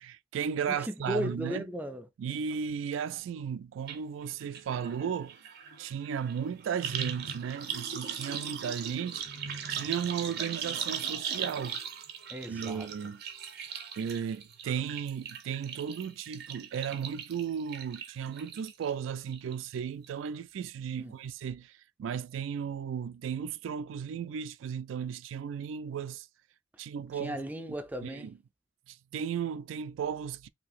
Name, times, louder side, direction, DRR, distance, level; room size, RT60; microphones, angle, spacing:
voice 1, 0.0-1.6 2.2-5.4 5.8-9.3 9.7-11.8 12.5-13.2 14.0-21.7 22.0-26.3 26.8-27.4 28.0-28.3 28.9-30.5, right 7 dB, 90° right, 0.3 m, -35 dB
voice 2, 0.7-2.1 12.3-12.9 21.0-21.1 27.1-28.3, equal, 10° right, 0.4 m, -36 dB
sound 1, 3.9-4.0 4.3-18.9 19.3-19.8 20.0-20.1, right 7 dB, 55° right, 0.6 m, -39 dB
2.8 x 2.6 x 4.1 m
head